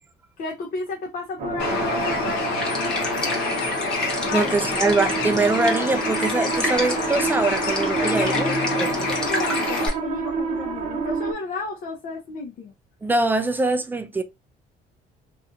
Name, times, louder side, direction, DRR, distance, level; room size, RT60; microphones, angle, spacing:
voice 1, 0.4-2.8 3.2-3.7 4.2-4.5 8.0-12.7, left 4 dB, 55° left, 0.6 m, -33 dB
sound 1, 1.4-11.3, right 5 dB, 50° right, 1.0 m, -29 dB
Bird, 1.6-9.9, left 3 dB, 85° left, 0.8 m, -27 dB
sound 2, 2.5-9.9, left 1 dB, 5° left, 0.9 m, -33 dB
voice 2, 4.3-8.5 8.8-8.9 13.0-14.2, right 3 dB, 10° right, 0.3 m, -23 dB
2.6 x 2.3 x 2.5 m
cardioid pair, 110°, 17 cm